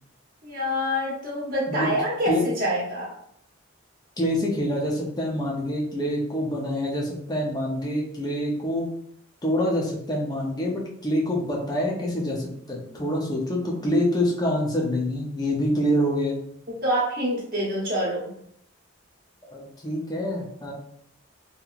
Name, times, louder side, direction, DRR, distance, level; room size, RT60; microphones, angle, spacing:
voice 1, 0.4-3.1 16.8-18.3, equal, 45° right, -6 dB, 0.9 m, -26 dB
voice 2, 4.2-8.9 9.4-16.4 19.4-20.7, equal, 20° left, -3 dB, 0.6 m, -26 dB
2.9 x 2.7 x 2.4 m, 0.68 s
head